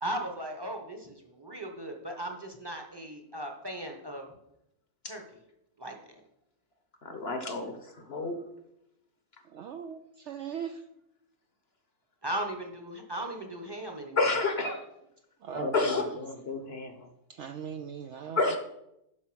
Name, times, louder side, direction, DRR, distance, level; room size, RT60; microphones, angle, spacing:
voice 1, 0.0-4.2 5.0-5.2 5.8-5.9 12.2-14.2, right 1 dB, 20° right, 3 dB, 0.9 m, -37 dB
voice 2, 7.0-8.4 14.2-14.8 15.5-17.1 18.4-18.6, left 3 dB, 50° left, 6 dB, 1.0 m, -30 dB
voice 3, 9.5-10.8 15.4-15.7 17.3-18.6, right 8 dB, 65° right, 6 dB, 0.7 m, -39 dB
7.5 x 5.5 x 6.2 m, 0.83 s
omnidirectional pair, 1.6 m